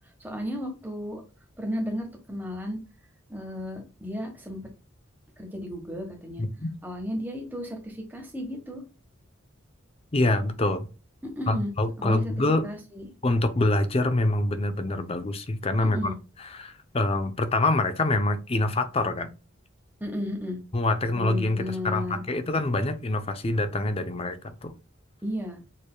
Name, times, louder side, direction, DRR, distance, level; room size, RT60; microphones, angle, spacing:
voice 1, 0.2-1.2 1.6-2.8 3.3-4.6 5.4-6.4 6.8-8.8 11.2-11.7 12.0-12.3 12.6-13.0 15.8-16.1 20.0-20.6 21.1-22.2 25.2-25.6, equal, 10° right, 1.2 m, -33 dB
voice 2, 6.4-6.7 10.1-10.9 11.5-12.7 13.2-16.1 16.5-19.3 20.7-24.7, left 2 dB, 30° left, 0.5 m, -25 dB
6.5 x 3.4 x 2.2 m
head